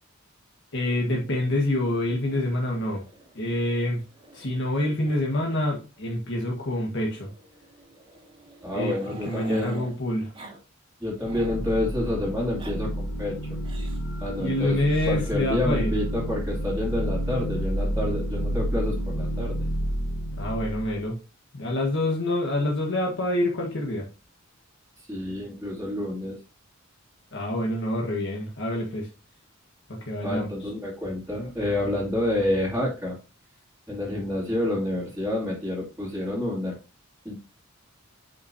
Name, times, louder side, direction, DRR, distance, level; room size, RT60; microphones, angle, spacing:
voice 1, 0.7-3.0 3.4-4.0 4.3-7.3 8.7-8.9 9.2-10.3 14.4-15.9 20.4-21.2 21.5-24.1 27.3-29.1 29.9-30.7, left 1 dB, 60° left, -1 dB, 1.6 m, -27 dB
Growling, 2.9-4.8 5.0-5.2 5.5-5.6 6.0-6.1 7.1-9.9 10.3-10.6 10.9-11.6 12.3-12.7 13.6-14.1 14.8-15.1 16.3-16.9, right 2 dB, 25° right, 2.0 m, -48 dB
voice 2, 8.6-9.8 11.0-13.4 14.2-14.8 15.1-19.6 25.0-26.4 30.2-33.2 33.9-36.8 37.2-37.3, left 1 dB, 5° right, -7 dB, 2.4 m, -28 dB
sound 1, 11.2-21.0, equal, 85° left, 1.5 m, -30 dB
8.9 x 5.6 x 2.8 m, 0.30 s
head